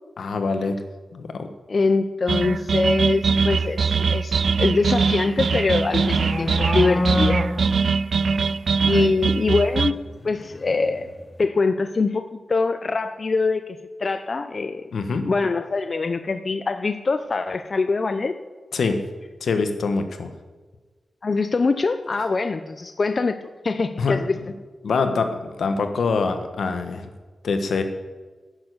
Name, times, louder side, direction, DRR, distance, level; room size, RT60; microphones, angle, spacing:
voice 1, 0.2-0.8 1.1-1.5 8.9-9.1 14.9-15.3 18.7-19.0 19.4-20.3 24.0-24.2 24.8-27.1 27.4-27.8, left 4 dB, 85° left, 7 dB, 1.3 m, -24 dB
voice 2, 1.7-7.4 8.8-10.0 10.2-11.1 11.4-14.9 15.2-18.4 21.2-23.4 23.6-24.4, left 4 dB, 45° left, 9 dB, 0.6 m, -23 dB
sound 1, 2.3-9.9, right 5 dB, 70° right, 0.3 m, -22 dB
sound 2, 5.2-8.7 9.8-11.3, left 2 dB, 30° left, 1.3 m, -29 dB
10.5 x 7.0 x 7.9 m, 1.3 s
wide cardioid pair, 110°, 0 cm